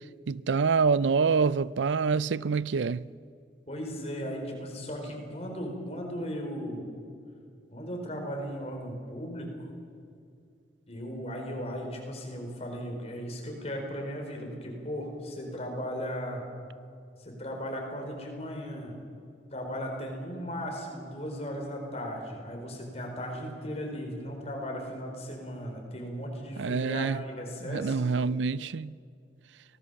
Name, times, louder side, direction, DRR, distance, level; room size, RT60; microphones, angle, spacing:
voice 1, 0.3-3.1 26.6-27.2 27.6-28.9, right 5 dB, 85° right, 0.5 m, -26 dB
voice 2, 3.7-6.9 7.7-9.7 10.9-16.4 17.2-18.9 19.5-28.0, equal, 35° left, 4.6 m, -36 dB
25.0 x 18.5 x 7.0 m
head